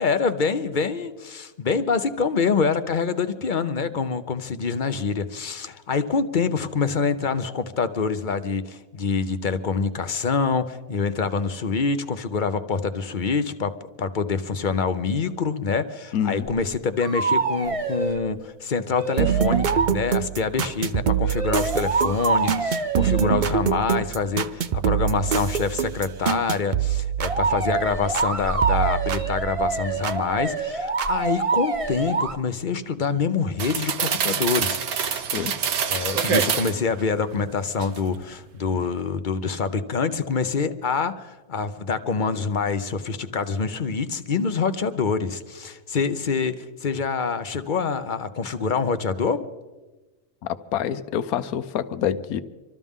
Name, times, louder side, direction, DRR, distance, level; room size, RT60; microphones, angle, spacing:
voice 1, 0.0-35.3 35.9-49.4, left 5 dB, 45° left, 11 dB, 0.8 m, -26 dB
voice 2, 16.1-16.5 35.3-35.5 50.7-52.4, left 9 dB, 90° left, 13 dB, 1.2 m, -26 dB
sound 1, 16.5-16.6 17.0-18.3 18.9-19.9 21.2-23.3 27.2-32.3, right 3 dB, 25° right, 1.0 m, -26 dB
sound 2, 19.2-28.3 28.6-30.2 31.0-31.1, right 9 dB, 60° right, 0.5 m, -25 dB
sound 3, 33.6-36.8 37.3-38.2 38.6-38.8, right 7 dB, 85° right, 1.4 m, -26 dB
25.5 x 13.5 x 3.6 m, 1.2 s
omnidirectional pair, 1.5 m